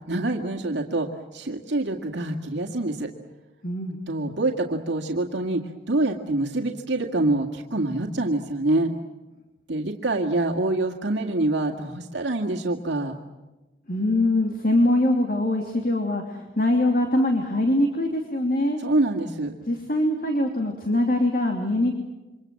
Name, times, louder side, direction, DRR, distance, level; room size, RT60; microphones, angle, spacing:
voice 1, 0.1-3.1 4.1-8.9 9.7-13.1 18.8-19.5, right 2 dB, 70° right, 2 dB, 2.0 m, -26 dB
voice 2, 3.6-4.0 13.9-18.8 19.7-21.9, left 1 dB, 50° left, 3 dB, 2.8 m, -23 dB
28.5 x 24.5 x 7.6 m, 1.1 s
head